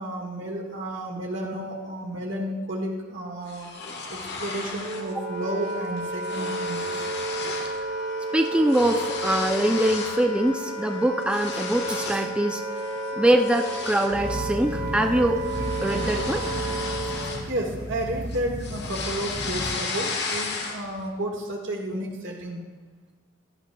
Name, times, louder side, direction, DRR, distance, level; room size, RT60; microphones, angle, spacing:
voice 1, 0.0-3.7 4.1-7.1 17.5-22.6, right 1 dB, 65° right, 0 dB, 1.7 m, -32 dB
sound 1, 3.5-5.1 5.5-5.7 6.0-7.8 8.1-10.2 10.7-12.3 12.8-13.0 13.4-18.0 18.3-21.0, left 4 dB, 55° left, 1.4 m, -34 dB
Wind instrument woodwind instrument, 4.8-17.5, right 1 dB, 35° right, 1.8 m, -32 dB
voice 2, 8.3-12.6 13.2-15.4 15.8-16.5, right 1 dB, 5° right, 3 dB, 0.4 m, -23 dB
sound 2, 14.1-19.7, equal, 20° right, 2.3 m, -34 dB
15.5 x 11.0 x 2.3 m, 1.4 s
head